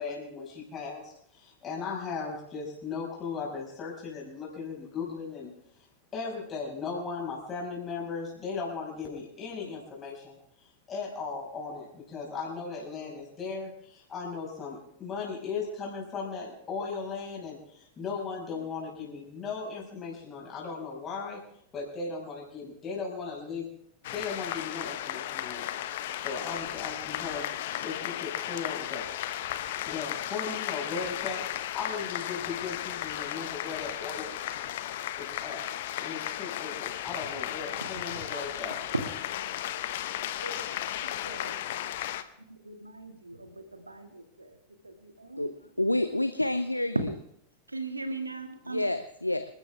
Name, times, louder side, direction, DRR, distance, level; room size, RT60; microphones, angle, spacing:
voice 1, 0.0-5.5 6.1-10.4 10.9-21.4 21.7-23.7 24.1-25.7 26.2-29.1 29.8-34.8 35.2-35.6 36.0-38.8, left 5 dB, 25° left, -3 dB, 5.8 m, -37 dB
sound 1, 24.0-42.2, left 12 dB, 55° left, 1.0 m, -35 dB
voice 2, 41.2-41.5 42.5-44.6 44.8-45.5 45.9-46.0 47.7-48.8, right 3 dB, 80° right, 7 dB, 2.2 m, -41 dB
voice 3, 45.8-47.1 48.7-49.5, left 1 dB, 85° left, 11 dB, 0.7 m, -28 dB
27.0 x 13.0 x 3.5 m, 0.72 s
figure-of-eight pair, 90°, 0 cm